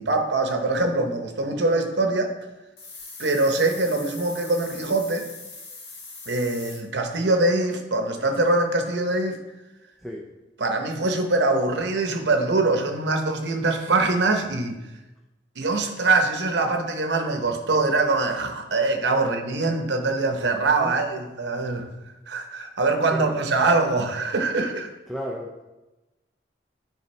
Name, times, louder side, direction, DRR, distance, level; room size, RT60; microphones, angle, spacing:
voice 1, 0.0-2.3 3.2-5.3 6.3-9.4 10.6-14.8 15.6-21.9 22.3-24.9, right 2 dB, 85° right, 5 dB, 0.8 m, -23 dB
sound 1, 2.8-6.8, left 3 dB, 80° left, 1.5 m, -41 dB
voice 2, 23.1-23.4 25.1-25.6, equal, ahead, -2 dB, 0.5 m, -33 dB
9.4 x 4.0 x 3.2 m, 1.0 s
head